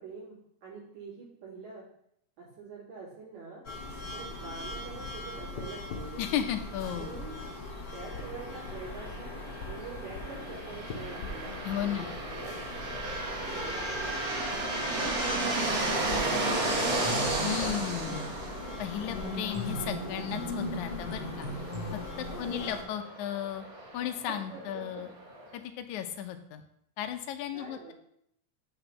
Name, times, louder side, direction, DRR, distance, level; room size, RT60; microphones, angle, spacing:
voice 1, 0.0-1.8 2.4-3.6 4.1-6.2 6.8-7.4 7.9-11.6 11.8-12.8 13.3-16.8 22.2-22.7 24.3-25.1 27.5-27.9, right 5 dB, 75° right, -8 dB, 4.5 m, -45 dB
sound 1, 3.7-22.8, left 3 dB, 65° left, 1.0 m, -40 dB
voice 2, 6.2-7.2 11.6-12.1 17.4-18.3 18.8-21.5 22.2-23.7 23.9-25.1 25.5-26.6 27.0-27.9, left 10 dB, 85° left, 8 dB, 2.1 m, -34 dB
sound 2, 8.0-25.5, right 2 dB, 40° right, 0.7 m, -34 dB
sound 3, 16.9-18.3 19.5-21.9, right 3 dB, 60° right, 2.2 m, -40 dB
8.1 x 3.5 x 5.9 m, 0.73 s
omnidirectional pair, 3.3 m